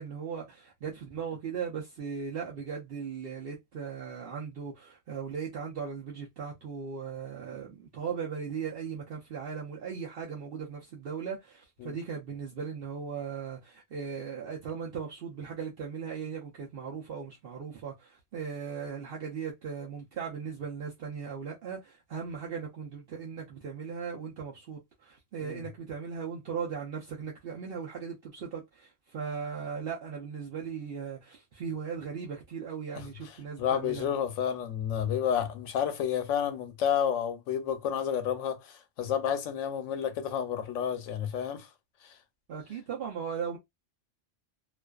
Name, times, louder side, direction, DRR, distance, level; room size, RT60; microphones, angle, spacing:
voice 1, 0.0-34.1 42.5-43.6, right 6 dB, 60° right, 0.7 m, -38 dB
voice 2, 33.6-41.7 42.0-42.1, left 8 dB, 85° left, 0.9 m, -30 dB
2.4 x 2.3 x 2.2 m
omnidirectional pair, 1.3 m